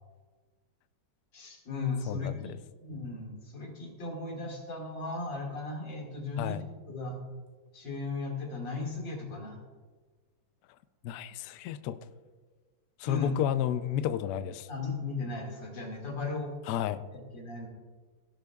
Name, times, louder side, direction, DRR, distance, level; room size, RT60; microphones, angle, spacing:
voice 1, 1.3-2.5 2.8-7.2 7.7-9.6 13.0-13.3 14.7-16.5 17.1-17.7, left 3 dB, 60° left, 1 dB, 2.8 m, -36 dB
voice 2, 2.1-2.6 6.4-6.6 11.0-12.0 13.0-14.7 16.7-17.0, left 11 dB, 90° left, 13 dB, 0.8 m, -31 dB
17.0 x 12.0 x 2.3 m, 1.4 s
omnidirectional pair, 2.3 m